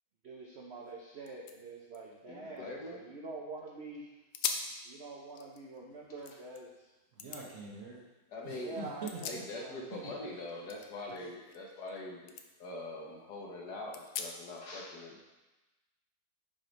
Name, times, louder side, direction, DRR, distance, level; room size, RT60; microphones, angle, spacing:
voice 1, 0.2-4.1 4.8-6.9 8.6-9.8 10.2-10.3, right 3 dB, 65° right, -2 dB, 0.6 m, -46 dB
sound 1, 0.9-1.0 1.2-3.4 3.8-3.9 4.3-4.8 5.2-6.6 7.2-7.4 8.8-9.9 10.2-12.0 12.3-12.5 13.0-13.1 13.9-14.6, left 6 dB, 80° left, 1.3 m, -42 dB
voice 2, 2.3-3.0 8.3-8.8 9.3-12.3 12.6-15.3, left 2 dB, 60° left, -2 dB, 1.6 m, -43 dB
voice 3, 7.1-8.0 8.4-9.2 9.9-10.1 11.1-11.3, right 3 dB, 50° right, -3 dB, 1.2 m, -44 dB
5.9 x 4.8 x 5.2 m, 1.1 s
omnidirectional pair, 2.0 m